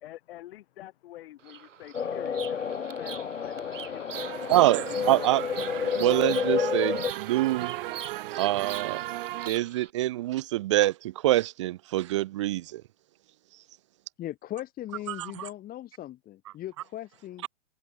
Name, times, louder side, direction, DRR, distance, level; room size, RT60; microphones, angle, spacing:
voice 1, 0.0-4.4 4.9-5.8, left 14 dB, 50° left, 1.4 m, -46 dB
Bird vocalization bird call bird song, 1.4-9.9, right 8 dB, 75° right, 1.5 m, -44 dB
sound 1, 1.9-7.1, left 7 dB, 80° left, 2.3 m, -30 dB
sound 2, 4.1-9.5, right 16 dB, 45° right, 0.9 m, -36 dB
voice 2, 4.5-5.4 5.7-7.8 8.4-9.0 9.5-12.8 15.1-15.5, right 15 dB, 25° right, 0.4 m, -25 dB
voice 3, 14.2-17.5, left 13 dB, 25° left, 3.2 m, -39 dB
hypercardioid pair, 120°, 38 cm